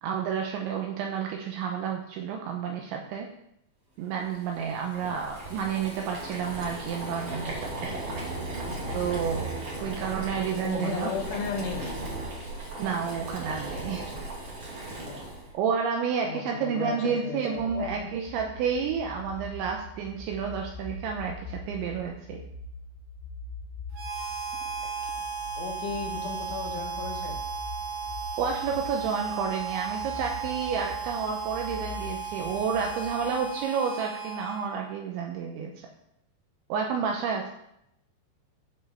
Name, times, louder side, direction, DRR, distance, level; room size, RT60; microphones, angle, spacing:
voice 1, 0.0-3.3 4.0-8.0 8.9-9.5 9.8-11.1 12.8-14.1 15.5-22.4 28.4-35.9 36.7-37.5, right 6 dB, 75° right, 2 dB, 2.9 m, -30 dB
Boiling, 4.2-15.5, right 2 dB, 35° right, 2.3 m, -36 dB
voice 2, 10.6-11.9 15.1-15.2 16.2-18.1 25.6-27.4, left 5 dB, 75° left, 0 dB, 3.9 m, -35 dB
sound 1, 17.5-33.5, left 2 dB, 45° left, 1.7 m, -43 dB
Harmonica, 23.9-35.0, right 6 dB, 55° right, 4.1 m, -35 dB
13.0 x 5.4 x 5.5 m, 0.79 s
omnidirectional pair, 5.7 m